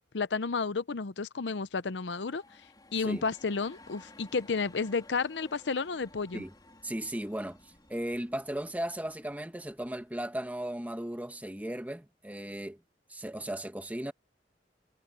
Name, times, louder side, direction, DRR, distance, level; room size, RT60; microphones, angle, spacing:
voice 1, 0.1-2.4 2.9-6.4, left 4 dB, 75° left, 0.7 m, -31 dB
sound 1, 1.7-10.4, left 2 dB, 25° left, 3.8 m, -57 dB
voice 2, 6.8-7.6 7.9-12.8 13.1-14.1, right 1 dB, 10° right, 1.6 m, -36 dB
head